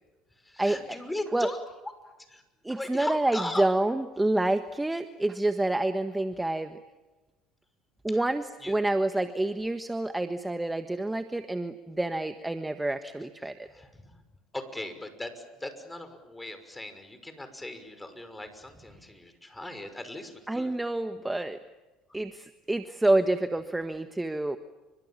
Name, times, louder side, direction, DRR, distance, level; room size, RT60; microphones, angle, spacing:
voice 1, 0.4-1.6 2.3-2.4 2.7-3.6 8.1-8.2 8.6-8.8 13.7-14.2 14.5-20.7, left 1 dB, 10° left, 9 dB, 6.0 m, -38 dB
voice 2, 2.6-6.8 8.0-13.7 20.5-21.6 22.1-24.6, right 2 dB, 10° right, 9 dB, 1.5 m, -28 dB
30.0 x 25.5 x 7.4 m, 1.1 s
hypercardioid pair, 80°, 0 cm